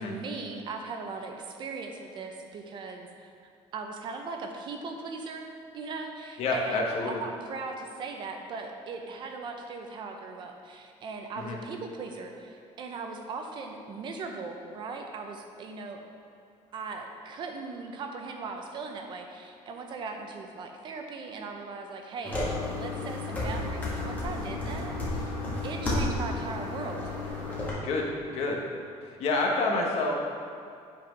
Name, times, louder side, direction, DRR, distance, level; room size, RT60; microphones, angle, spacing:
voice 1, 0.0-16.0 16.7-22.4 22.7-25.4 25.6-27.0, right 4 dB, 40° right, 4 dB, 0.6 m, -39 dB
voice 2, 6.4-7.2 11.4-11.6 27.8-28.7 29.0-30.2, left 3 dB, 55° left, 0 dB, 1.1 m, -28 dB
sound 1, 22.2-27.7, left 2 dB, 15° left, 1.5 m, -32 dB
8.5 x 4.3 x 5.2 m, 2.4 s
cardioid pair, 175°, 12 cm